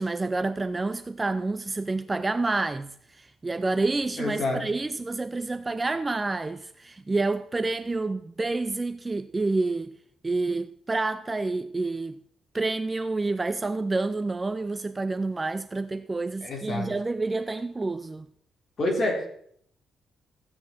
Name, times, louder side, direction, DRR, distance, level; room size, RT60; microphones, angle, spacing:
voice 1, 0.0-2.9 3.2-9.9 10.2-12.2 12.5-18.2, right 3 dB, 15° right, 0.5 m, -28 dB
voice 2, 4.2-4.6 16.4-16.9 18.8-19.3, left 2 dB, 35° left, 3.5 m, -27 dB
15.5 x 8.7 x 4.4 m
cardioid pair, 150°, 0 cm